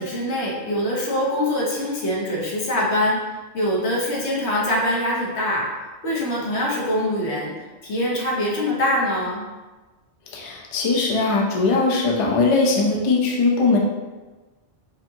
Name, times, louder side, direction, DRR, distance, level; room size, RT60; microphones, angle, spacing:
voice 1, 0.0-3.2 3.5-5.7 6.0-7.5 7.8-9.5, left 1 dB, 75° left, -3 dB, 1.2 m, -23 dB
voice 2, 10.3-13.8, left 3 dB, 40° left, -2 dB, 0.5 m, -20 dB
4.9 x 2.7 x 2.7 m, 1.2 s
omnidirectional pair, 1.1 m